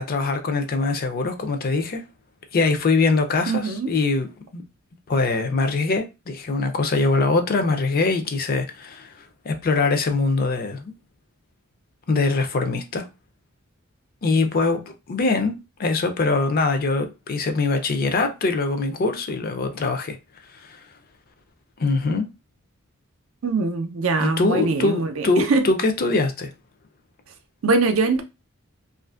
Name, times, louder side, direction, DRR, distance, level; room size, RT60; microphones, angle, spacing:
voice 1, 0.0-2.0 2.5-4.3 4.5-4.6 5.1-9.1 9.4-10.9 12.1-13.1 14.2-20.2 21.8-22.3 24.2-26.5, left 3 dB, 45° left, 0.4 m, -23 dB
voice 2, 3.5-4.0 23.4-25.7 27.6-28.2, right 3 dB, 75° right, 0.5 m, -22 dB
2.5 x 2.4 x 2.3 m
head